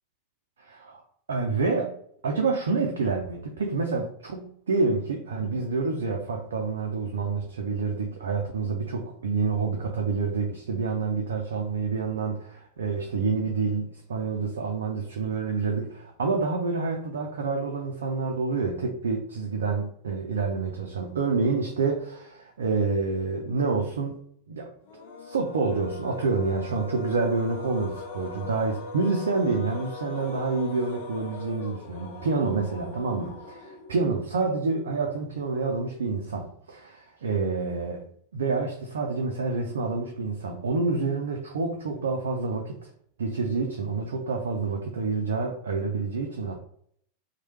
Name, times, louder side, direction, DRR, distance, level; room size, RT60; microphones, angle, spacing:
voice 1, 0.6-1.0 1.3-1.9 2.2-24.2 24.5-24.7 25.2-38.0 38.3-42.9 43.2-46.6, right 4 dB, 65° right, 1 dB, 0.4 m, -28 dB
sound 1, 24.8-34.2, left 5 dB, 55° left, 0.5 m, -40 dB
3.0 x 2.1 x 3.0 m, 0.65 s
figure-of-eight pair, 90°, 0 cm